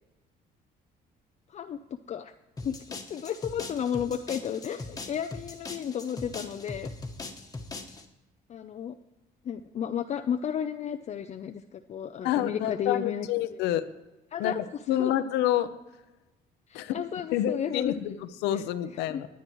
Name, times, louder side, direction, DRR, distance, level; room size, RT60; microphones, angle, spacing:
voice 1, 1.5-2.3 2.6-6.9 8.5-8.9 9.4-13.6 14.3-14.6 15.0-15.1 16.7-17.9 18.5-18.6 19.1-19.2, left 8 dB, 40° left, 6 dB, 0.5 m, -33 dB
sound 1, 2.6-8.0, left 3 dB, 20° left, 1.4 m, -40 dB
voice 2, 12.2-13.9 14.4-14.6 14.9-15.7 16.7-18.1 18.4-19.3, left 12 dB, 90° left, 11 dB, 0.7 m, -28 dB
20.0 x 9.4 x 3.1 m, 1.1 s
cardioid pair, 110°, 17 cm